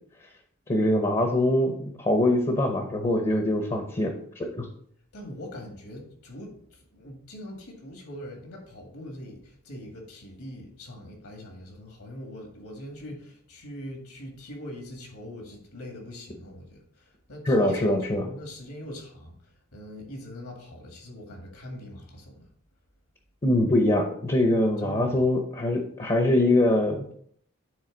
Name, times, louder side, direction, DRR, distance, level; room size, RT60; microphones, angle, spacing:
voice 1, 0.7-4.7 17.5-18.2 23.4-27.1, left 1 dB, 25° left, 4 dB, 0.7 m, -23 dB
voice 2, 5.1-19.4 19.7-22.5 24.8-25.2, left 1 dB, 70° left, 2 dB, 2.0 m, -42 dB
9.5 x 3.9 x 3.9 m, 0.63 s
head